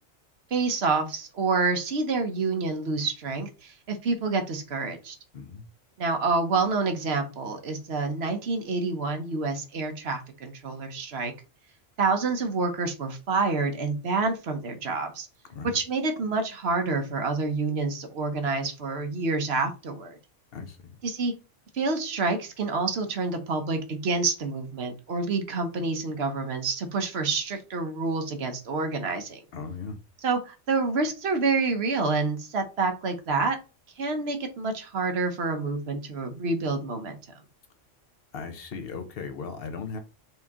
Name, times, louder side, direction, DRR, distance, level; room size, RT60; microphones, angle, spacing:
voice 1, 0.5-5.2 6.0-11.3 12.0-15.3 15.7-20.2 21.0-21.3 21.7-29.4 30.2-33.6 34.0-37.2, right 3 dB, 60° right, 1.1 m, -28 dB
voice 2, 5.3-5.6 15.5-15.8 20.5-21.0 29.5-30.0 38.3-40.0, left 5 dB, 55° left, 1.0 m, -37 dB
4.4 x 2.8 x 3.6 m
omnidirectional pair, 1.3 m